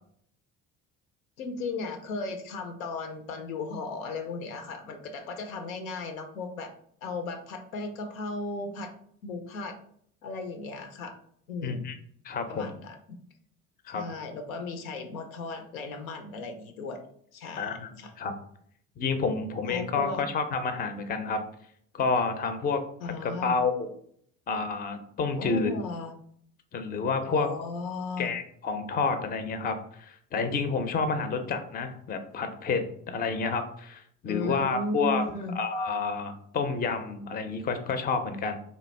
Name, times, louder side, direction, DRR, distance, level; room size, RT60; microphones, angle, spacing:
voice 1, 1.4-6.7 7.0-8.9 9.2-9.7 10.2-11.1 11.5-11.9 12.5-13.2 13.9-17.0 17.3-18.1 19.7-20.3 23.0-23.6 25.4-26.1 27.2-28.3 34.2-35.6, left 3 dB, 85° left, 6 dB, 0.6 m, -36 dB
voice 2, 11.6-11.9 12.2-12.7 13.9-14.0 17.5-17.9 18.2-18.3 19.0-21.4 21.9-23.9 24.5-25.7 26.7-27.5 28.2-35.2 35.6-38.6, left 4 dB, 25° left, 8 dB, 0.4 m, -29 dB
3.0 x 2.2 x 3.2 m, 0.64 s
hypercardioid pair, 60°, 41 cm